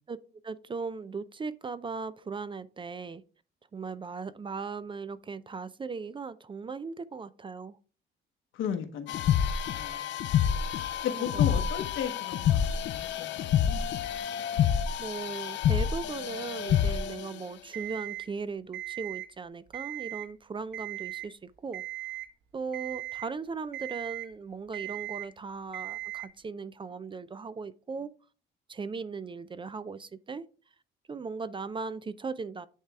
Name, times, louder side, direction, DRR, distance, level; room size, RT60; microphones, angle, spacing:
voice 1, 0.4-3.2 3.7-7.8 11.3-11.6 15.0-21.8 22.5-28.1 28.7-30.4 31.1-32.7, right 4 dB, 25° right, 0.4 m, -38 dB
voice 2, 8.5-9.4 9.7-10.1 11.0-13.9, left 8 dB, 80° left, 1.1 m, -35 dB
sound 1, 9.1-17.3, left 9 dB, 65° left, 0.5 m, -28 dB
Alarm, 17.7-18.3 18.7-19.3 19.7-20.3 20.7-21.3 21.7-22.3 22.7-23.3 23.7-24.3 24.7-25.3 25.7-26.3, right 16 dB, 65° right, 1.2 m, -38 dB
9.0 x 3.3 x 3.4 m
cardioid pair, 90°, 20 cm